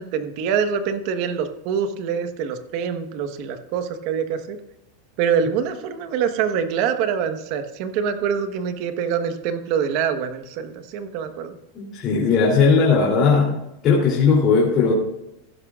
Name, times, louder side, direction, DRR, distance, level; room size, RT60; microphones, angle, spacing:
voice 1, 0.0-4.6 5.2-11.6 13.5-13.6, right 7 dB, 50° right, 8 dB, 1.3 m, -25 dB
voice 2, 11.7-13.5 13.8-14.9, left 5 dB, 35° left, -4 dB, 3.1 m, -17 dB
15.5 x 11.5 x 2.5 m, 0.87 s
supercardioid pair, 150°, 0 cm